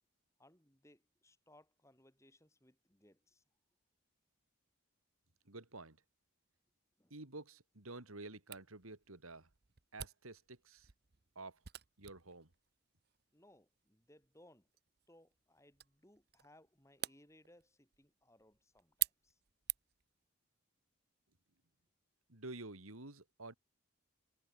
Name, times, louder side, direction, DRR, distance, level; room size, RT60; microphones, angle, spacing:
voice 1, 0.4-3.4 7.0-7.2 13.3-14.7 15.1-19.4, left 1 dB, 15° left, 5.6 m, -66 dB
voice 2, 5.5-6.0 7.1-9.5 9.9-10.9 11.3-11.6 12.0-12.5 22.3-23.5, right 2 dB, 85° right, 3.2 m, -50 dB
Camera, 8.5-20.1, right 15 dB, 50° right, 0.9 m, -47 dB
head